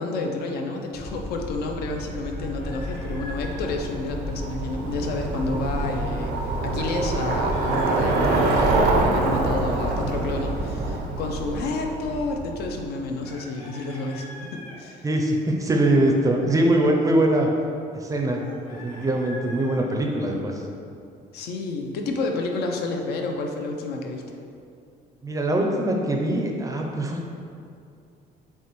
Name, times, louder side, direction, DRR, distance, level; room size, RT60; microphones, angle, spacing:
voice 1, 0.0-6.3 6.6-15.1 21.3-24.2, left 3 dB, 70° left, 2 dB, 0.5 m, -30 dB
sound 1, 0.9-11.0, left 1 dB, 30° left, 0.7 m, -35 dB
Bicycle, 1.9-12.8, right 3 dB, 80° right, 0.5 m, -26 dB
Chicken rooster, 2.3-3.8 7.1-8.7 13.2-14.8 18.3-19.8, equal, 55° left, 1.5 m, -43 dB
voice 2, 15.0-17.5 17.9-18.4 18.7-20.6 25.2-27.3, right 1 dB, 20° right, 1 dB, 0.4 m, -22 dB
6.0 x 2.2 x 3.0 m, 2.5 s
cardioid pair, 110°, 17 cm